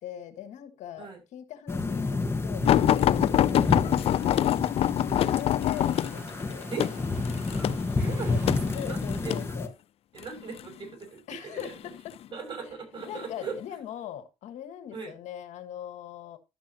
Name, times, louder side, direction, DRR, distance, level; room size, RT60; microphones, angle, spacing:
voice 1, 0.0-4.6 5.2-6.7 8.1-8.4 8.7-9.7 11.3-12.1 13.1-16.4, left 10 dB, 75° left, 1.5 m, -41 dB
sound 1, 1.7-9.7, left 3 dB, 20° left, 1.4 m, -30 dB
sound 2, 2.6-9.5 10.2-10.7 11.6-12.3 13.0-13.2 13.6-13.7, left 12 dB, 55° left, 0.4 m, -25 dB
Mechanisms, 5.6-9.2, right 1 dB, 20° right, 7.2 m, -49 dB
voice 2, 8.0-9.6 10.1-11.8 12.3-13.6 14.9-15.1, right 5 dB, 40° right, 6.5 m, -39 dB
12.0 x 7.5 x 2.9 m
cardioid pair, 90°, 12 cm